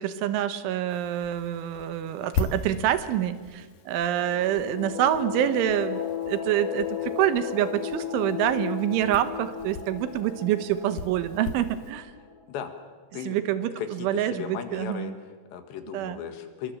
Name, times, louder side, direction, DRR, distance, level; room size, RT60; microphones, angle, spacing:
voice 1, 0.0-6.0 6.3-12.1 13.3-15.1 15.9-16.2, right 11 dB, 85° right, 11 dB, 3.7 m, -26 dB
sound 1, 0.9-11.9, left 4 dB, 55° left, 3.2 m, -39 dB
sound 2, 4.1-12.7, left 9 dB, 35° left, 2.6 m, -35 dB
voice 2, 13.8-16.7, left 8 dB, 70° left, 7 dB, 3.8 m, -36 dB
26.5 x 23.5 x 7.2 m, 1.5 s
omnidirectional pair, 5.4 m